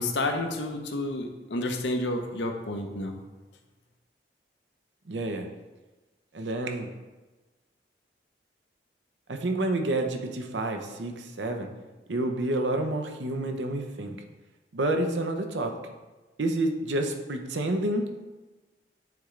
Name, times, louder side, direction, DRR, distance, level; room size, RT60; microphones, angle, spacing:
voice 1, 0.0-3.2, left 2 dB, 90° left, 4 dB, 0.8 m, -30 dB
voice 2, 5.1-5.5 6.3-6.9 9.3-11.7 12.1-14.2 14.7-15.7 16.4-18.1, right 1 dB, 90° right, 4 dB, 0.7 m, -29 dB
9.0 x 3.8 x 3.3 m, 1.2 s
head